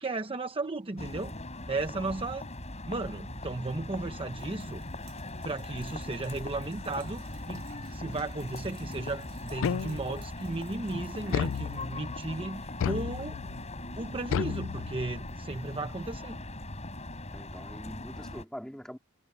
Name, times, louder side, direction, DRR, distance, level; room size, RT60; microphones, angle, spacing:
voice 1, 0.0-1.3 1.7-2.5 2.8-4.8 5.4-7.6 7.9-13.4 14.0-16.4, right 2 dB, 25° right, 0.9 m, -35 dB
sound 1, 1.0-18.4, left 2 dB, 30° left, 7.8 m, -40 dB
Sink (filling or washing), 4.4-14.1, right 3 dB, 70° right, 7.1 m, -55 dB
sound 2, 9.6-10.3 11.3-12.2 12.8-13.6 14.3-15.3, left 8 dB, 60° left, 0.3 m, -32 dB
voice 2, 17.3-19.0, equal, 5° left, 3.4 m, -43 dB
head